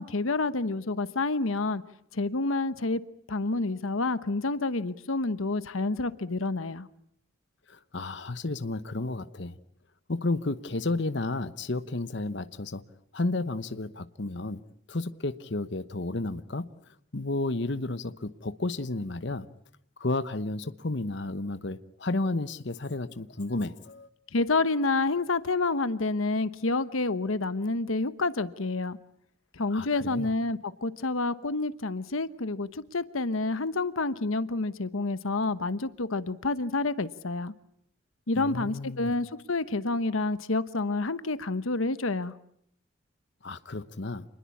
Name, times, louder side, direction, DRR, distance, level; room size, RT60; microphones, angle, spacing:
voice 1, 0.0-1.8 2.1-3.0 3.3-6.9 24.3-29.0 29.5-37.5 38.3-42.4, left 3 dB, 85° left, 1.1 m, -28 dB
voice 2, 7.7-9.6 10.1-12.8 13.1-14.6 14.9-16.7 17.1-19.5 20.0-24.1 29.7-30.3 38.4-39.1 43.4-44.3, left 2 dB, 60° left, 1.0 m, -32 dB
28.0 x 21.0 x 8.5 m
head